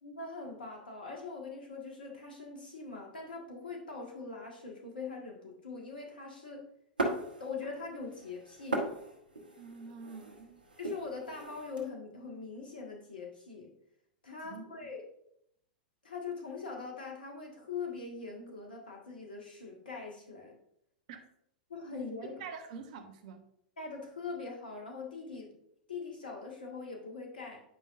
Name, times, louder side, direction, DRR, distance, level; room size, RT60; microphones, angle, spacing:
voice 1, 0.0-6.6 7.2-8.9 10.8-13.7 14.2-15.0 16.0-20.6 21.7-22.3 23.8-25.5 25.9-27.6, left 4 dB, 80° left, 0 dB, 1.6 m, -42 dB
sound 1, 7.0-7.8 8.1-11.8, right 2 dB, 80° right, 1.2 m, -37 dB
voice 2, 9.6-10.6 14.5-14.6 21.1-21.2 22.4-23.4, right 5 dB, 55° right, 8 dB, 0.9 m, -46 dB
9.0 x 5.3 x 2.5 m, 0.74 s
figure-of-eight pair, 95°, 5 cm